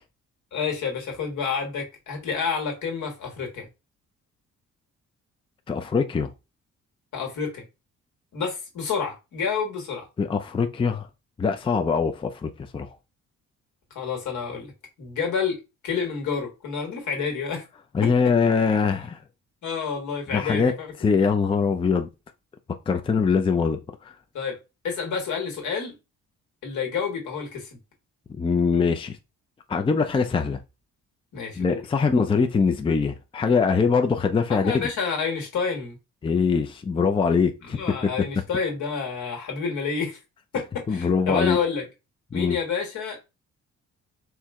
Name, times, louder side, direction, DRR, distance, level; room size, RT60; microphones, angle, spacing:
voice 1, 0.5-3.7 7.1-7.6 8.3-10.1 13.9-14.7 15.0-17.6 18.0-18.1 19.6-21.2 24.3-24.6 24.8-25.9 26.6-27.7 31.3-31.8 34.5-36.0 37.6-40.2 40.5-41.8 42.3-43.2, left 5 dB, 75° left, 1.5 m, -29 dB
voice 2, 5.7-6.3 10.2-11.1 11.4-12.9 17.9-19.2 20.3-20.7 21.0-22.1 22.9-24.1 28.4-29.2 29.7-30.6 31.6-34.9 36.2-38.1 40.9-41.6 42.3-42.6, left 5 dB, 20° left, 0.4 m, -23 dB
4.5 x 2.1 x 3.6 m
cardioid pair, 90°, 30 cm